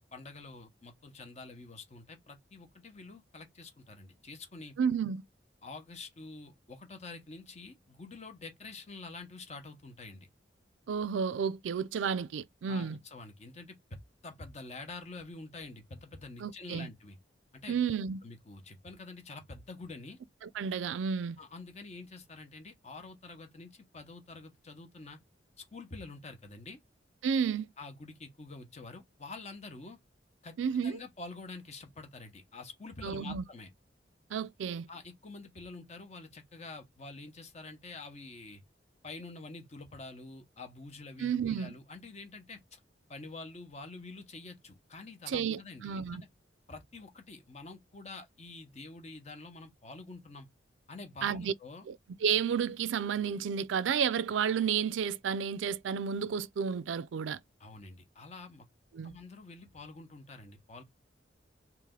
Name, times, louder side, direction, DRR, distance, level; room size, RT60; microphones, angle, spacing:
voice 1, 0.0-4.8 5.6-10.3 12.7-17.2 17.5-17.8 18.2-20.2 21.4-25.2 25.6-26.8 27.8-30.0 30.4-30.6 30.8-33.7 34.9-38.6 39.0-42.8 43.1-46.3 46.7-50.5 50.9-51.9 57.6-58.7 59.0-60.8, left 3 dB, 40° left, 0.9 m, -47 dB
voice 2, 4.8-5.2 10.9-13.0 16.4-16.9 17.7-18.2 20.4-21.4 27.2-27.7 30.6-31.0 33.0-33.4 34.3-34.9 41.2-41.7 45.3-46.2 51.2-51.5 51.9-52.0 52.2-57.4 58.9-59.1, right 7 dB, 90° right, 0.4 m, -31 dB
3.2 x 2.9 x 3.6 m
head